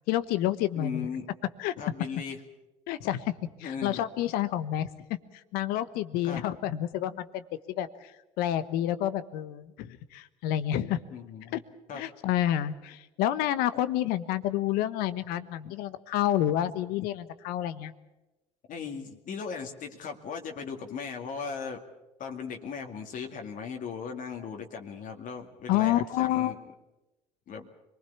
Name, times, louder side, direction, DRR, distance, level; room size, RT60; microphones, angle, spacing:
voice 1, 0.1-1.1 1.6-1.7 2.9-4.9 5.5-8.1 8.4-11.0 11.5-11.6 11.9-17.9 25.7-26.5, left 12 dB, 70° left, 14 dB, 1.2 m, -29 dB
voice 2, 0.7-1.3 1.8-2.4 3.6-4.0 6.2-6.4 11.1-11.6 11.9-12.0 15.6-15.7 18.7-21.8 22.2-26.6 27.5-27.7, left 6 dB, 55° left, 3 dB, 2.3 m, -37 dB
25.5 x 20.0 x 7.1 m, 1.0 s
hypercardioid pair, 65°, 16 cm